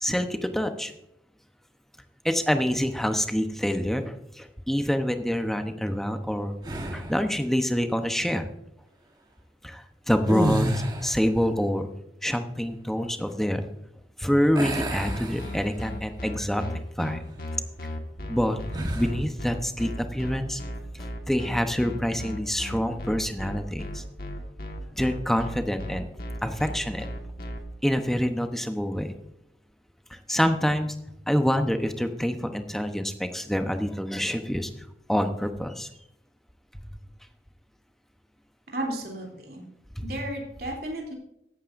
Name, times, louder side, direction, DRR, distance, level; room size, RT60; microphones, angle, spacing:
voice 1, 0.0-0.9 2.2-6.5 6.9-8.5 9.6-11.9 12.2-13.6 14.2-16.6 17.0-17.2 18.3-18.6 18.9-20.6 21.3-24.0 24.9-26.0 26.4-27.1 27.8-29.2 30.1-30.9 31.3-34.7 35.1-35.9 40.0-40.1, equal, ahead, 7 dB, 0.8 m, -26 dB
sound 1, 6.6-7.3 10.2-11.3 14.5-16.0 16.5-16.7 18.7-19.2, right 1 dB, 25° right, 1.3 m, -29 dB
sound 2, 15.0-27.6, left 1 dB, 55° left, 1.6 m, -35 dB
voice 2, 38.7-39.6 40.0-41.1, right 1 dB, 60° right, -1 dB, 3.1 m, -33 dB
15.0 x 11.5 x 2.6 m, 0.81 s
head